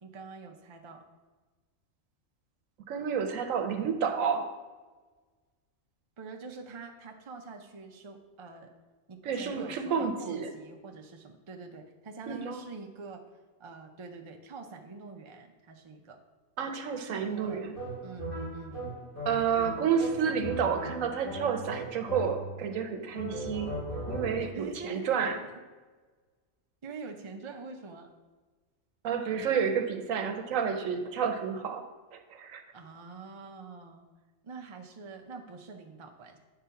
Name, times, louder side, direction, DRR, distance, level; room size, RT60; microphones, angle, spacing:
voice 1, 0.0-1.0 6.2-8.7 9.1-13.2 13.6-16.2 17.0-17.6 18.0-18.9 24.4-25.1 25.4-25.5 26.8-28.1 32.7-34.1 34.4-36.4, right 4 dB, 35° right, 3 dB, 0.5 m, -45 dB
voice 2, 2.9-4.5 9.2-10.5 12.3-12.6 16.6-17.8 19.2-23.7 24.1-25.4 29.0-32.6, right 6 dB, 80° right, 7 dB, 1.1 m, -30 dB
sound 1, 17.7-22.7 23.1-24.6, right 1 dB, 40° left, 2.9 m, -38 dB
8.4 x 3.8 x 5.7 m, 1.3 s
omnidirectional pair, 1.4 m